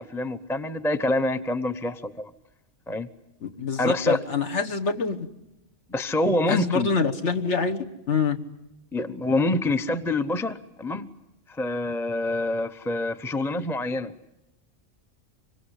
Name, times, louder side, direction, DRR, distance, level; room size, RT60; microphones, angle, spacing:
voice 1, 0.0-2.3 2.9-3.1 3.8-4.2 5.9-6.9 8.9-11.1 11.5-14.1, left 2 dB, 5° left, 10 dB, 0.6 m, -26 dB
voice 2, 3.4-5.3 6.5-8.4, left 5 dB, 65° left, 5 dB, 1.8 m, -26 dB
26.0 x 23.5 x 8.2 m, 0.93 s
omnidirectional pair, 1.3 m